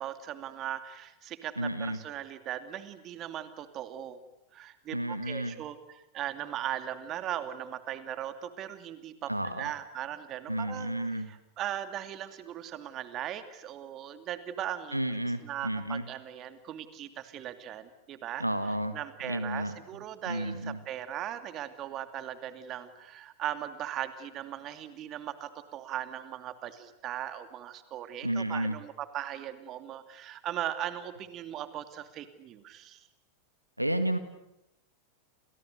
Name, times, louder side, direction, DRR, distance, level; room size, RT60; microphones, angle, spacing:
voice 1, 0.0-4.2 4.5-15.0 15.4-18.4 18.9-33.0, right 11 dB, 35° right, 10 dB, 2.6 m, -38 dB
voice 2, 1.6-2.0 4.9-5.5 9.3-9.7 10.5-11.3 14.9-16.0 18.4-19.0 19.2-19.7 20.3-20.8 28.2-28.8 33.8-34.2, right 1 dB, 90° right, 11 dB, 1.9 m, -31 dB
30.0 x 29.0 x 6.7 m, 0.85 s
figure-of-eight pair, 90°, 0 cm